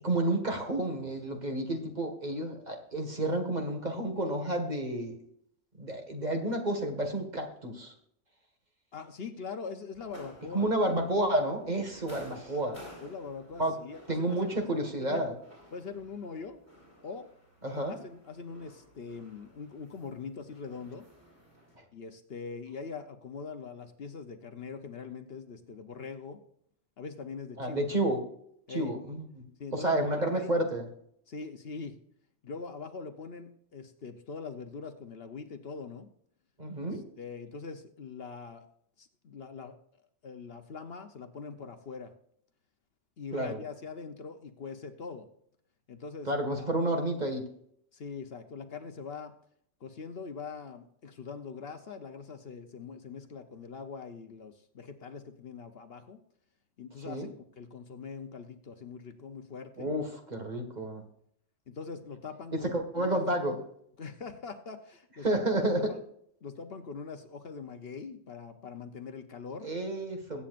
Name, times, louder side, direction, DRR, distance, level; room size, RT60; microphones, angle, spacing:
voice 1, 0.0-5.2 5.8-7.9 10.5-12.8 13.6-13.7 14.1-15.3 17.6-18.0 21.8-21.9 27.6-28.2 28.7-29.5 29.7-30.9 36.6-37.0 43.3-43.6 46.3-47.4 57.1-57.3 59.8-61.0 62.5-63.6 65.2-65.9 69.6-70.4, right 1 dB, 35° right, 3 dB, 1.9 m, -30 dB
voice 2, 8.9-10.7 13.0-14.6 15.0-15.3 15.7-16.6 17.0-17.3 17.9-21.1 21.9-26.4 27.0-27.8 28.7-29.0 29.6-30.5 31.3-32.0 32.4-36.1 36.8-38.7 39.0-39.8 40.2-42.1 43.2-45.3 45.9-46.3 46.6-47.1 47.9-49.3 49.8-56.2 56.8-59.9 61.7-63.2 64.0-65.4 65.9-66.0 66.4-69.7, left 5 dB, 60° left, 7 dB, 1.0 m, -42 dB
sound 1, 9.9-21.8, equal, 10° right, 5.0 m, -54 dB
21.5 x 8.7 x 2.5 m, 0.69 s
omnidirectional pair, 1.2 m